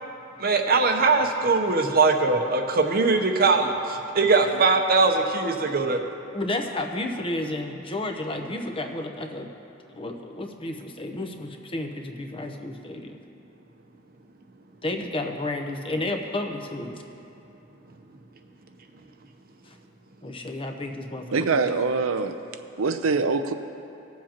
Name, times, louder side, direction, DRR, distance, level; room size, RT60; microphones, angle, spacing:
voice 1, 0.4-6.0, right 3 dB, 50° right, 4 dB, 0.8 m, -21 dB
voice 2, 6.3-9.5 10.0-13.2 14.8-17.0 19.7-19.8 20.2-21.6, left 2 dB, 25° left, 4 dB, 0.8 m, -31 dB
voice 3, 21.3-22.3 22.8-23.5, right 4 dB, 85° right, 8 dB, 0.6 m, -24 dB
20.0 x 7.4 x 2.9 m, 2.9 s
head